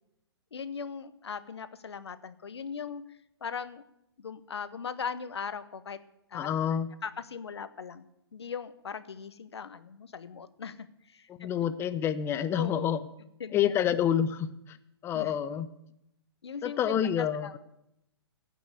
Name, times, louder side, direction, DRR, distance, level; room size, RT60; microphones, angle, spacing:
voice 1, 0.5-3.0 3.4-3.8 4.2-6.0 6.3-6.6 7.0-10.9 11.1-11.5 12.5-12.9 13.4-13.5 15.1-15.3 16.4-17.5, left 6 dB, 75° left, 13 dB, 1.0 m, -39 dB
voice 2, 6.3-6.9 11.3-13.1 13.5-14.8 15.0-15.7 16.6-17.6, left 9 dB, 15° left, 13 dB, 0.6 m, -28 dB
14.5 x 6.0 x 8.3 m, 0.84 s
figure-of-eight pair, 130°, 14 cm